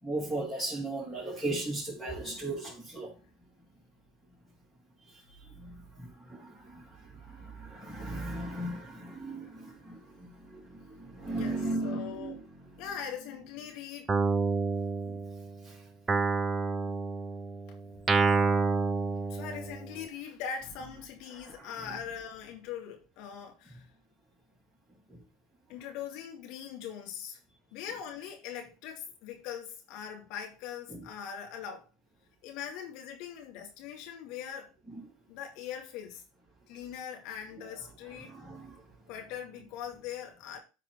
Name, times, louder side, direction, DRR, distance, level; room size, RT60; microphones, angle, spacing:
voice 1, 0.0-3.1 5.6-6.8 7.3-12.3 15.6-15.7 21.3-21.7 30.9-31.0 38.2-38.8, right 2 dB, 5° right, 3.8 m, -37 dB
voice 2, 11.3-12.4 12.8-14.1 17.9-18.0 19.3-23.9 25.7-27.4 27.7-31.9 32.4-34.7 35.3-36.2 36.7-38.3 39.1-40.6, left 8 dB, 60° left, 2.2 m, -41 dB
Guitar, 14.1-15.6 16.1-20.0, right 4 dB, 25° right, 0.7 m, -29 dB
13.0 x 4.3 x 3.8 m
hypercardioid pair, 80°, 0 cm